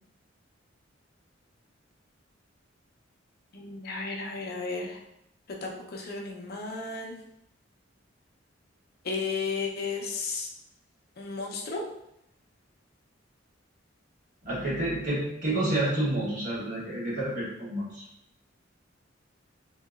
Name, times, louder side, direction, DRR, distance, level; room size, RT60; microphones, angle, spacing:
voice 1, 3.5-5.0 5.5-7.1 9.0-10.5 11.2-11.8, left 4 dB, 55° left, 0 dB, 0.5 m, -34 dB
voice 2, 14.4-18.0, right 1 dB, 45° right, -7 dB, 1.3 m, -29 dB
2.8 x 2.7 x 2.4 m, 0.81 s
head